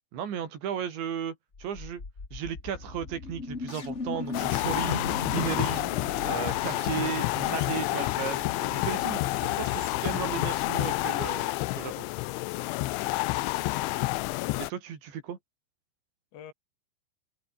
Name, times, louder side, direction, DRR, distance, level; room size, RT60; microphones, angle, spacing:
voice 1, 0.1-2.0 2.3-5.0 5.3-5.9 6.3-11.5 11.8-12.1 14.6-15.4, right 8 dB, 60° right, 5.8 m, -35 dB
sound 1, 1.5-10.7, left 3 dB, 30° left, 1.3 m, -38 dB
sound 2, 4.3-14.7, left 21 dB, 85° left, 2.9 m, -29 dB
voice 2, 16.3-16.5, left 9 dB, 65° left, 5.9 m, -50 dB
omnidirectional pair, 5.8 m